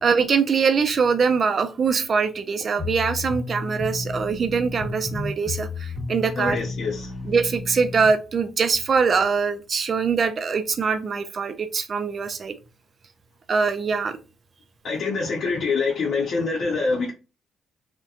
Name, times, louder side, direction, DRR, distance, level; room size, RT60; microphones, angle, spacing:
voice 1, 0.0-6.6 7.3-12.5 13.5-14.2, right 5 dB, 45° right, 0.4 m, -23 dB
sound 1, 2.8-8.1, left 3 dB, 5° left, 1.1 m, -32 dB
voice 2, 6.4-7.2 14.8-17.1, left 4 dB, 60° left, 0.7 m, -25 dB
2.7 x 2.1 x 2.3 m
cardioid pair, 90°, 0 cm